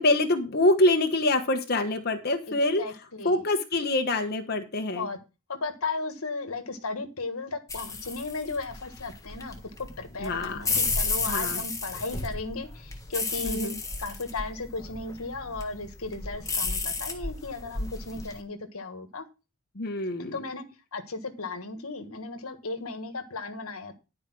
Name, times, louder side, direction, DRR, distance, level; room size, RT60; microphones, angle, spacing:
voice 1, 0.0-2.8 3.2-5.1 10.2-10.6 11.3-11.6 13.4-13.8 19.7-20.4, left 2 dB, 45° left, 5 dB, 1.3 m, -25 dB
voice 2, 2.8-3.4 4.9-5.2 5.5-13.7 14.0-19.2 20.2-20.6 20.9-24.0, left 3 dB, 80° left, 8 dB, 1.5 m, -35 dB
spinning racecar wheels, 7.7-18.4, left 3 dB, 15° left, 1.5 m, -33 dB
11.5 x 4.9 x 6.1 m, 0.29 s
head